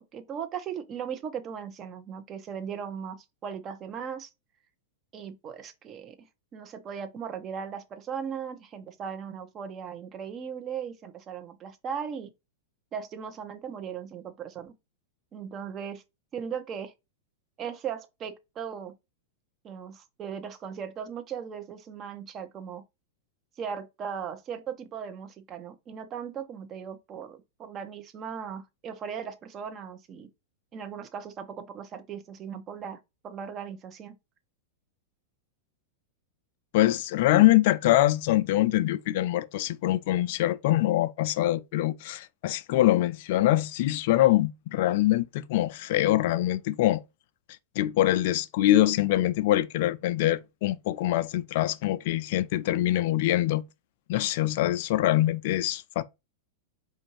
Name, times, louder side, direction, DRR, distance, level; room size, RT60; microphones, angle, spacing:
voice 1, 0.0-4.3 5.1-6.3 6.5-12.3 12.9-14.7 15.3-16.0 16.3-16.9 17.6-19.0 19.6-22.8 23.6-30.3 30.7-34.2, right 7 dB, 30° right, 0.8 m, -38 dB
voice 2, 36.7-47.0 47.8-53.6 54.1-56.0, left 15 dB, 60° left, 0.3 m, -24 dB
4.5 x 2.6 x 2.9 m
hypercardioid pair, 110°, 0 cm